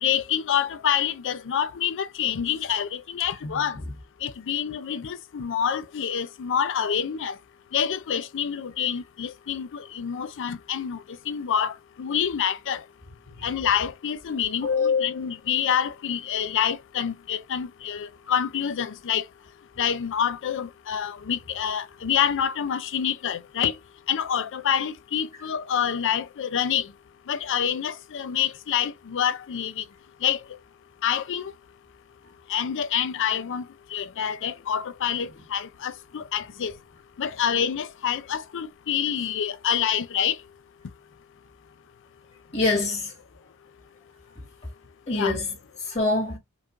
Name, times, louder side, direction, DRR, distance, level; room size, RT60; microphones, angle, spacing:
voice 1, 0.0-3.8 4.2-7.4 7.7-12.8 13.4-19.2 19.8-23.8 24.1-26.9 27.3-29.8 30.2-30.4 31.0-31.5 32.5-36.8 37.2-40.4 45.1-45.3, left 8 dB, 55° left, 0.4 m, -27 dB
voice 2, 14.6-15.3 42.5-43.1 45.1-45.6 45.9-46.4, left 3 dB, 30° left, 2.1 m, -25 dB
4.7 x 2.5 x 2.5 m
head